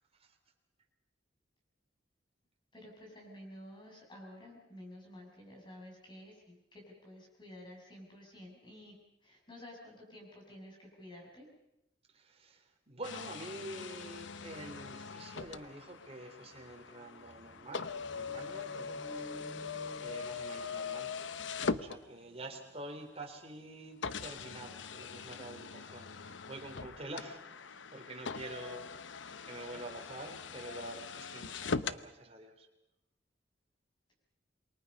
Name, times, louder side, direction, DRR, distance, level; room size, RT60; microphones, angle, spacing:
voice 1, 2.7-8.9 9.2-11.5, left 1 dB, 25° left, 0 dB, 7.3 m, -51 dB
voice 2, 12.1-19.3 20.0-21.1 21.7-28.9 29.5-32.7, right 2 dB, 35° right, 3 dB, 3.7 m, -47 dB
sound 1, 13.0-22.5 23.2-23.3 24.0-32.1, left 5 dB, 90° left, 0.9 m, -41 dB
sound 2, 15.9-20.9, equal, 15° right, 2.1 m, -54 dB
28.0 x 24.0 x 5.5 m, 0.85 s
head